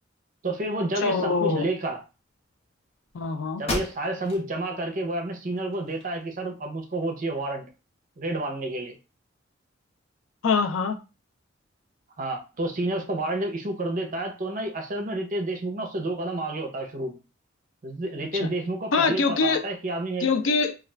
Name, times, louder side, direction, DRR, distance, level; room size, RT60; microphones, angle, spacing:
voice 1, 0.4-2.0 3.6-7.6 8.2-8.9 12.2-17.2 17.8-20.3, right 2 dB, 45° right, 0.6 m, -30 dB
voice 2, 1.0-1.7 3.1-3.6 10.4-11.0 18.3-18.5 18.9-19.6 20.2-20.7, left 4 dB, 80° left, 0.4 m, -24 dB
sound 1, 3.1-3.2 3.6-4.5 4.9-5.0 5.6-6.5, left 2 dB, 30° left, 0.7 m, -34 dB
2.4 x 2.3 x 3.1 m
head